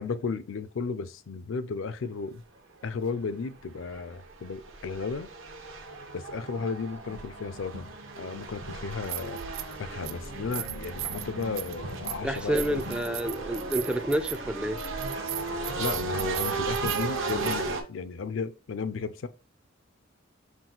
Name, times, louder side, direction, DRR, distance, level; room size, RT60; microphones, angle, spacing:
voice 1, 0.0-2.4 2.8-5.3 6.1-7.9 8.2-9.4 9.8-12.8 15.8-19.3, left 4 dB, 70° left, 0.4 m, -34 dB
sound 1, 3.1-3.2 3.7-17.8, right 3 dB, 70° right, 0.8 m, -35 dB
sound 2, 7.2-7.3 8.8-9.8 10.0-17.6, right 12 dB, 90° right, 0.4 m, -38 dB
voice 2, 12.2-14.8, right 1 dB, 5° right, 0.3 m, -29 dB
6.0 x 2.2 x 3.8 m
head